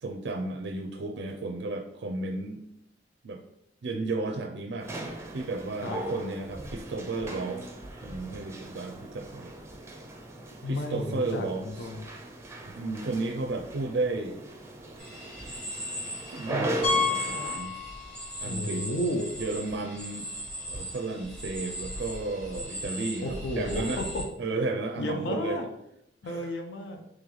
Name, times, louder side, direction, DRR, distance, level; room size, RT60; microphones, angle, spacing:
voice 1, 0.0-2.6 3.2-3.4 3.8-7.7 8.0-9.5 10.7-11.9 12.7-14.4 16.3-17.7 18.4-18.9 19.4-20.3 20.7-24.0 24.4-25.6 26.2-26.5, right 3 dB, 75° right, 3 dB, 0.4 m, -33 dB
sound 1, 4.8-17.6, right 1 dB, 15° right, 0.5 m, -38 dB
voice 2, 10.6-12.0 18.5-19.3 23.2-24.2 25.0-25.7 26.2-27.0, left 1 dB, 75° left, 4 dB, 0.5 m, -32 dB
sound 2, 15.0-24.2, equal, 5° left, 1.5 m, -38 dB
Piano, 16.8-18.4 18.7-18.9 19.4-19.5 19.8-19.9 22.0-22.1, left 4 dB, 30° left, 0.7 m, -30 dB
3.8 x 3.1 x 3.1 m, 0.77 s
head